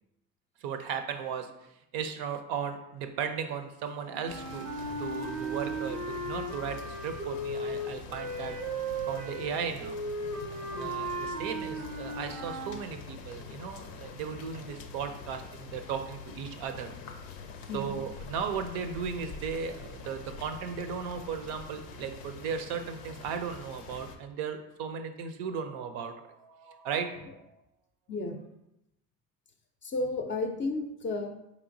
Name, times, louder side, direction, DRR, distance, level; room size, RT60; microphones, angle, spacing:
voice 1, 0.6-1.5 1.9-4.7 5.0-8.6 9.1-10.0 10.7-16.9 17.7-27.6, right 6 dB, 55° right, 7 dB, 0.6 m, -36 dB
sound 1, 4.0-12.7, right 1 dB, 90° right, 0.8 m, -36 dB
sound 2, 4.3-24.2, left 5 dB, 85° left, 0.6 m, -45 dB
voice 2, 28.1-28.4 29.8-31.3, left 2 dB, 25° left, 3 dB, 0.5 m, -33 dB
4.4 x 3.0 x 2.5 m, 0.85 s
hypercardioid pair, 65°, 48 cm